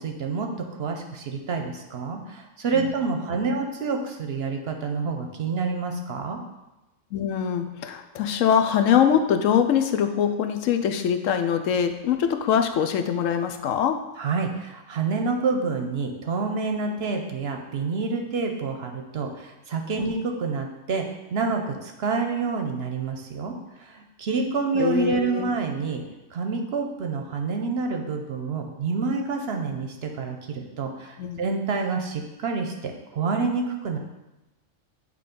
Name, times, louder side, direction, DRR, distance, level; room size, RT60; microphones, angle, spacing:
voice 1, 0.0-6.4 14.2-26.0 26.3-34.0, right 4 dB, 60° right, 4 dB, 0.8 m, -28 dB
voice 2, 7.1-13.9 20.0-20.1 24.7-25.5 31.2-31.4, left 8 dB, 75° left, 7 dB, 0.9 m, -23 dB
8.5 x 3.3 x 5.1 m, 1.0 s
omnidirectional pair, 1.4 m